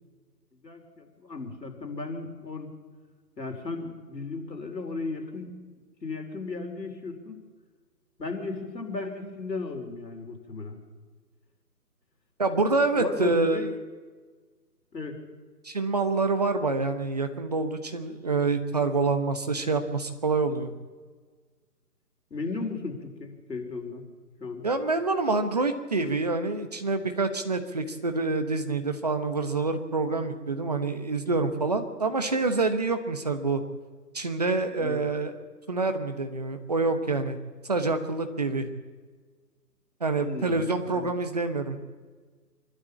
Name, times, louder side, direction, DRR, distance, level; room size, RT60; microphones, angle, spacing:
voice 1, 0.6-2.7 3.4-5.6 6.0-7.4 8.2-10.8 13.0-13.7 14.9-15.2 22.3-24.0 24.4-24.7 34.8-35.1 40.2-41.1, left 3 dB, 80° left, 3 dB, 4.8 m, -35 dB
voice 2, 12.4-13.7 15.6-20.7 24.6-33.6 34.1-35.3 35.7-37.4 37.7-38.7 40.0-41.8, right 3 dB, 25° right, 7 dB, 1.0 m, -27 dB
25.0 x 12.0 x 8.6 m, 1.4 s
figure-of-eight pair, 165°, 49 cm